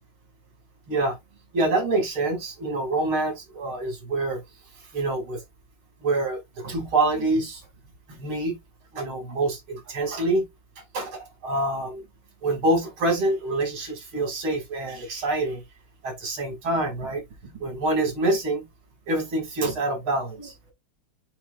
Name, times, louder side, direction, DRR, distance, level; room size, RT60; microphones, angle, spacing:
voice 1, 1.5-4.4 4.9-5.4 6.0-7.6 8.2-8.6 8.9-10.4 10.9-12.0 12.4-15.6 16.0-17.2 17.6-18.6 19.1-20.5, right 2 dB, 75° right, 3.3 m, -26 dB
7.0 x 5.5 x 2.4 m
omnidirectional pair, 2.3 m